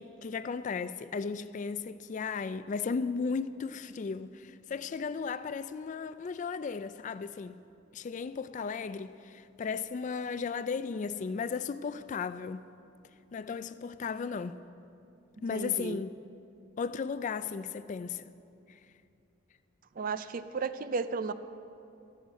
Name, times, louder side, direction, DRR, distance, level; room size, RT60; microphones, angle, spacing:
voice 1, 0.0-7.6 7.9-12.6 13.3-14.6 15.4-16.1 16.8-18.3 18.7-18.8, left 5 dB, 40° left, 0.3 m, -35 dB
voice 2, 15.4-16.0 20.0-21.3, right 4 dB, 45° right, 0.4 m, -34 dB
15.0 x 13.0 x 4.1 m
head